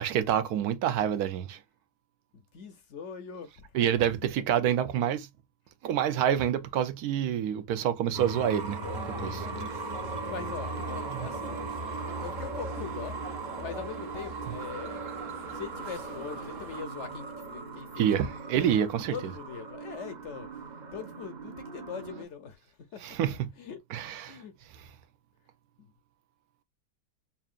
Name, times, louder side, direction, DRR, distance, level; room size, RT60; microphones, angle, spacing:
voice 1, 0.0-1.6 3.7-5.3 5.8-8.8 9.2-9.5 11.1-11.3 18.0-19.1 23.0-23.5 23.9-24.4 24.7-24.8, right 9 dB, 80° right, 1.2 m, -27 dB
voice 2, 2.3-3.5 4.0-4.1 10.3-11.6 12.0-13.2 13.6-15.1 15.5-18.7 19.1-20.5 20.9-22.6 22.9-23.0 23.6-23.8 24.3-24.5 25.8-25.9, left 6 dB, 60° left, 0.8 m, -42 dB
sound 1, 8.1-22.3, right 3 dB, 40° right, 0.7 m, -38 dB
sound 2, 8.8-16.8, right 1 dB, 60° right, 1.3 m, -44 dB
5.5 x 2.4 x 2.4 m
omnidirectional pair, 1.6 m